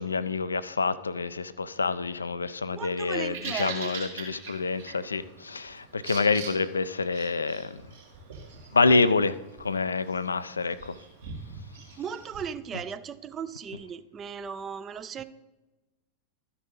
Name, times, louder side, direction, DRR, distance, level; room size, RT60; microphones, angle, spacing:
voice 1, 0.0-7.8 8.7-10.9, left 4 dB, 75° left, 0.3 m, -27 dB
voice 2, 2.7-3.9 12.0-15.2, right 7 dB, 25° right, 0.4 m, -37 dB
Bird vocalization bird call bird song, 3.0-12.4, right 4 dB, 65° right, 2.8 m, -43 dB
13.0 x 5.4 x 4.0 m
figure-of-eight pair, 90°, 0 cm